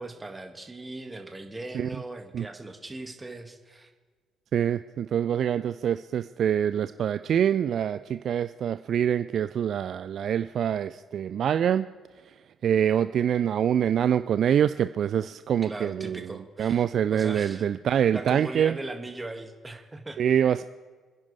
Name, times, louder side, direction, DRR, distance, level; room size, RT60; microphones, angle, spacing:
voice 1, 0.0-3.9 15.6-16.8 17.1-17.6 18.1-20.2, right 2 dB, 20° right, 5 dB, 2.3 m, -39 dB
voice 2, 4.5-11.9 12.6-18.8 20.2-20.6, right 9 dB, 55° right, 13 dB, 0.4 m, -25 dB
29.0 x 10.5 x 3.5 m, 1.5 s
figure-of-eight pair, 45°, 0 cm